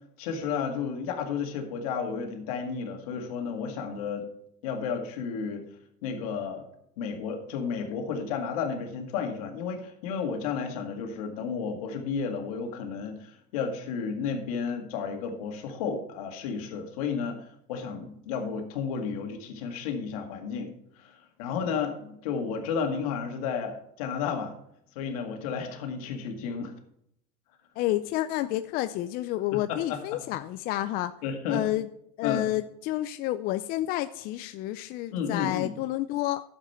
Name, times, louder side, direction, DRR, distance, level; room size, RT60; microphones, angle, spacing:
voice 1, 0.2-4.3 4.6-5.7 6.0-6.7 7.0-17.4 17.7-20.7 21.0-24.5 25.0-26.7 29.5-30.2 31.2-31.6 32.2-32.4 35.1-35.7, left 6 dB, 90° left, 4 dB, 2.0 m, -32 dB
voice 2, 27.8-31.1 31.5-31.9 32.2-36.4, left 15 dB, 55° left, 11 dB, 0.5 m, -30 dB
11.5 x 7.5 x 4.4 m, 0.75 s
supercardioid pair, 130°, 18 cm